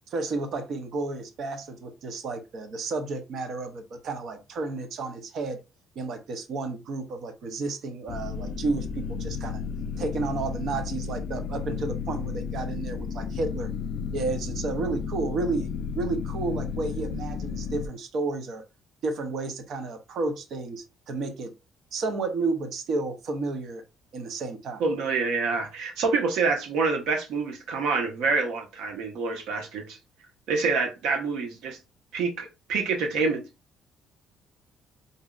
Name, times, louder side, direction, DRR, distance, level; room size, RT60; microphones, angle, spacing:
voice 1, 0.1-5.6 6.0-9.6 10.0-13.7 14.1-18.6 19.0-21.5 21.9-23.8 24.1-24.8, right 3 dB, 50° right, 0.6 m, -31 dB
sound 1, 8.1-17.9, left 5 dB, 50° left, 0.4 m, -33 dB
voice 2, 24.8-30.0 30.5-31.8 32.1-33.4, right 4 dB, 80° right, 1.0 m, -27 dB
5.0 x 2.6 x 2.3 m
cardioid pair, 175°, 0 cm